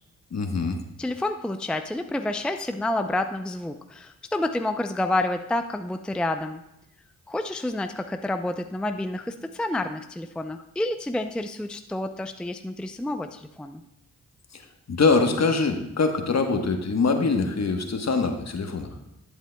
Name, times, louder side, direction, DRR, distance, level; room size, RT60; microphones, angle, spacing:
voice 1, 0.3-0.8 14.5-19.0, left 4 dB, 50° left, 5 dB, 1.2 m, -24 dB
voice 2, 1.0-6.6 7.3-13.8, left 1 dB, 5° left, 8 dB, 0.5 m, -29 dB
11.5 x 8.2 x 2.3 m, 0.86 s
supercardioid pair, 45°, 35 cm